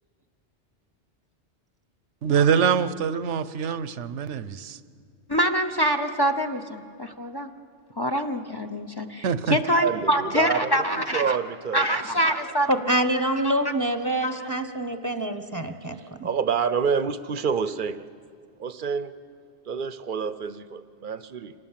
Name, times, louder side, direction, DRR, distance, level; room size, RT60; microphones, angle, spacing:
voice 1, 2.2-4.8 9.2-9.6, right 7 dB, 80° right, 14 dB, 1.0 m, -24 dB
voice 2, 5.3-7.5 8.0-9.2 9.5-11.4 11.7-12.7 14.2-14.4, equal, 25° left, 7 dB, 0.7 m, -25 dB
voice 3, 9.8-11.9 16.2-18.0 18.6-19.1 19.7-21.5, right 6 dB, 50° right, 13 dB, 0.8 m, -28 dB
voice 4, 12.7-16.3, right 1 dB, 15° right, 8 dB, 0.9 m, -26 dB
26.0 x 19.0 x 7.4 m, 2.2 s
omnidirectional pair, 1.2 m